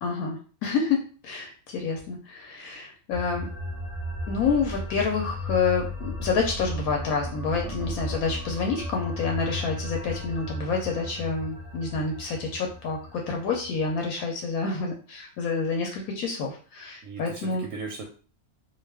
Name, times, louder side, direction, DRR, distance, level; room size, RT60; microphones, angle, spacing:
voice 1, 0.0-3.5 4.3-17.7, left 4 dB, 75° left, 1 dB, 1.0 m, -28 dB
sound 1, 3.1-13.9, left 1 dB, 35° left, 0.6 m, -35 dB
voice 2, 17.0-18.0, right 4 dB, 70° right, 1 dB, 0.9 m, -38 dB
2.4 x 2.3 x 3.3 m, 0.39 s
omnidirectional pair, 1.6 m